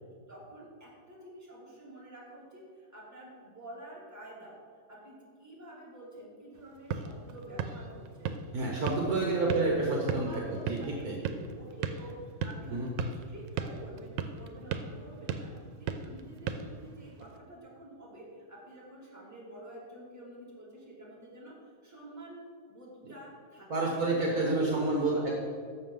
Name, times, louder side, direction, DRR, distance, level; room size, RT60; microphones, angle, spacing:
voice 1, 0.3-4.6 4.9-8.3 8.7-9.5 9.8-11.3 11.5-15.5 15.8-21.5 21.8-22.4 22.7-23.8 24.4-25.2, right 1 dB, 10° right, -6 dB, 2.2 m, -48 dB
sound 1, 6.6-17.4, right 6 dB, 85° right, 1.3 m, -38 dB
voice 2, 8.5-11.2 12.7-12.9 23.0-23.1 23.7-25.3, right 2 dB, 55° right, -1 dB, 1.6 m, -29 dB
11.5 x 7.2 x 3.8 m, 2.1 s
omnidirectional pair, 2.0 m